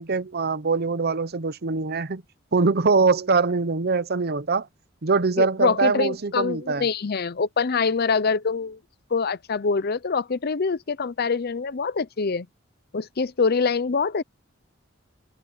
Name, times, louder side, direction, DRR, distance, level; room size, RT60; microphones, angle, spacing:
voice 1, 0.0-2.2 2.5-4.7 5.0-6.9, right 4 dB, 55° right, 0.8 m, -23 dB
voice 2, 5.4-8.8 9.1-12.5 12.9-14.2, left 5 dB, 55° left, 0.6 m, -24 dB
head